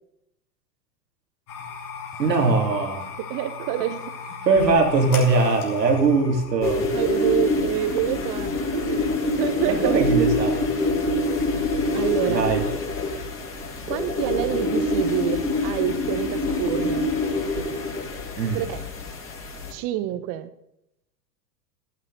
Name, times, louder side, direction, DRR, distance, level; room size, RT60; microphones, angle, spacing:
sound 1, 1.5-8.1, left 5 dB, 60° left, 3.9 m, -37 dB
voice 1, 2.2-3.0 4.4-6.9 9.7-10.7 12.3-12.6 18.4-18.6, right 4 dB, 85° right, 1 dB, 3.0 m, -21 dB
voice 2, 3.2-4.1 6.9-10.1 11.0-11.2 11.9-12.5 13.9-17.1 18.5-18.9 19.7-20.5, right 12 dB, 40° right, 12 dB, 1.2 m, -27 dB
sound 2, 6.6-19.7, left 1 dB, 25° left, 3.5 m, -25 dB
13.0 x 11.0 x 4.1 m, 0.80 s
hypercardioid pair, 100°, 48 cm